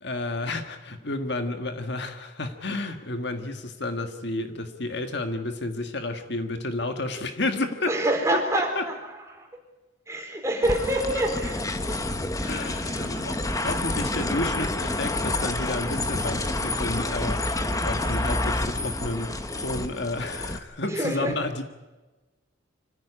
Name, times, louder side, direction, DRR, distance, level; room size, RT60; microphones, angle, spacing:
voice 1, 0.0-7.9 8.7-8.8 12.4-21.6, left 2 dB, 55° left, 7 dB, 1.7 m, -31 dB
voice 2, 7.8-9.6 10.1-12.0 12.8-13.3 20.8-21.3, right 1 dB, 15° right, 2 dB, 4.2 m, -27 dB
sound 1, 10.6-20.6, left 2 dB, 15° left, 1.2 m, -28 dB
25.5 x 15.0 x 10.0 m, 1.2 s
head